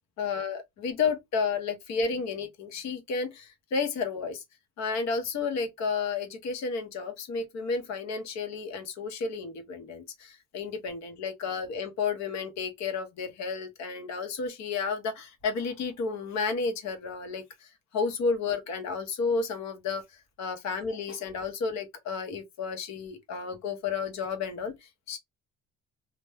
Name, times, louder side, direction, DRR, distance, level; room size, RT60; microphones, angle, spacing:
voice 1, 0.2-4.4 4.8-20.0 20.4-25.2, left 5 dB, 65° left, 1.0 m, -32 dB
2.5 x 2.1 x 3.3 m
cardioid pair, 140°, 29 cm